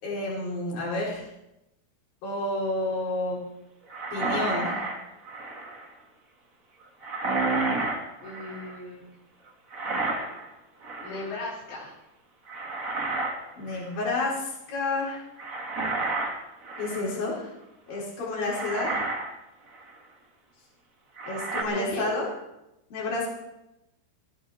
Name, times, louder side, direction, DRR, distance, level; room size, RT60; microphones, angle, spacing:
voice 1, 0.0-1.2 2.2-3.4 4.1-4.8 13.6-15.2 16.8-17.5 17.9-18.9 21.2-22.3 22.9-23.3, left 2 dB, 55° left, -5 dB, 5.9 m, -30 dB
sound 1, 3.9-5.9 7.0-8.8 9.7-10.5 10.8-11.3 12.5-13.4 13.7-13.9 15.4-17.2 17.9-18.0 18.4-19.3 19.7-19.9 21.2-21.6, right 3 dB, 45° right, 1.1 m, -31 dB
voice 2, 8.2-9.0 11.0-11.9 21.7-22.0, left 2 dB, 70° left, -6 dB, 5.0 m, -37 dB
18.0 x 16.0 x 3.6 m, 0.91 s
omnidirectional pair, 5.1 m